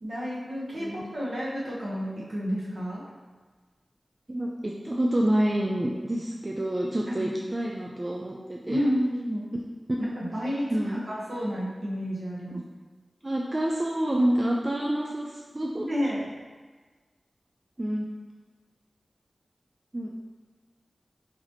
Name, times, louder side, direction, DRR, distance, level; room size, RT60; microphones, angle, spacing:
voice 1, 0.0-3.0 7.1-7.5 8.7-9.4 10.1-12.6 15.8-16.3, equal, 65° right, -7 dB, 1.1 m, -30 dB
voice 2, 4.3-8.8 9.5-9.6 10.7-11.0 12.5-12.6 13.2-15.9 17.8-18.1 19.9-20.1, right 1 dB, 30° right, -2 dB, 0.3 m, -28 dB
3.9 x 2.9 x 2.9 m, 1.4 s
wide cardioid pair, 90°, 0 cm